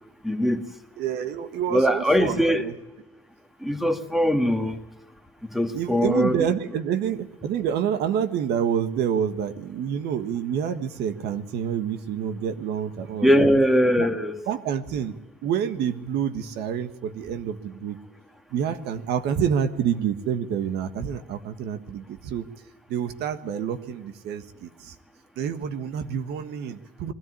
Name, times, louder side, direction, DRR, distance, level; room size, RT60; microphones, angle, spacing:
voice 1, 0.2-0.6 1.7-2.6 3.6-4.8 5.5-6.4 13.2-14.4, equal, ahead, 1.8 m, -21 dB
voice 2, 1.0-2.7 5.7-13.5 14.0-14.1 14.5-15.2 15.4-18.0 18.5-22.5 22.9-24.9 25.4-27.1, right 8 dB, 80° right, 1.5 m, -28 dB
21.5 x 13.5 x 9.9 m
cardioid pair, 110°, 17 cm